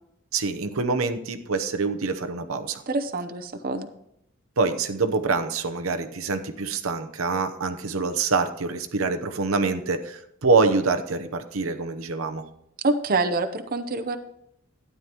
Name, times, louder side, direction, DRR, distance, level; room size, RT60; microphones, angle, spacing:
voice 1, 0.3-2.8 4.6-12.4, right 4 dB, 90° right, 7 dB, 0.9 m, -25 dB
voice 2, 2.9-3.9 12.8-14.2, right 3 dB, 45° right, 7 dB, 0.7 m, -26 dB
12.5 x 9.6 x 3.0 m, 0.77 s
head